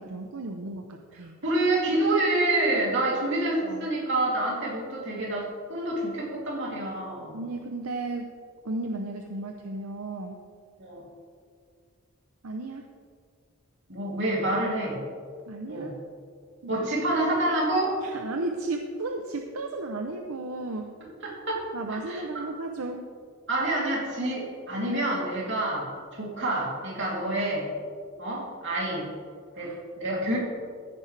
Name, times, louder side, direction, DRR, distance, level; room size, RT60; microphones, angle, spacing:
voice 1, 0.0-1.3 3.6-3.9 7.3-8.3 8.6-10.4 12.4-12.9 15.5-16.0 16.6-16.9 18.0-20.9 21.7-23.1 29.6-29.8, right 2 dB, 80° right, 4 dB, 0.7 m, -34 dB
voice 2, 1.4-7.4 10.8-11.0 13.9-15.0 15.7-15.9 16.7-18.0 21.2-22.2 23.5-27.7 28.2-29.1 29.5-30.4, right 1 dB, 55° right, -4 dB, 3.1 m, -27 dB
14.5 x 10.0 x 3.3 m, 2.1 s
head